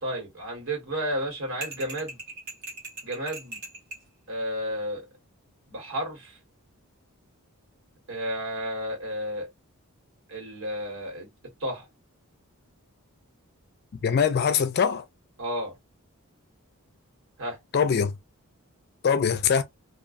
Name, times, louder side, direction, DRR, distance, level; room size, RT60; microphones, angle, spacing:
voice 1, 0.0-2.2 3.0-3.6 4.3-5.0 5.7-6.4 8.1-9.5 10.3-11.3 11.6-11.9 15.4-15.7 17.4-17.6, equal, 65° right, 1.4 m, -32 dB
sound 1, 1.6-4.1, right 2 dB, 45° right, 0.8 m, -39 dB
voice 2, 14.0-15.0 17.7-18.1 19.0-19.6, left 7 dB, 45° left, 0.3 m, -22 dB
2.4 x 2.2 x 2.4 m
head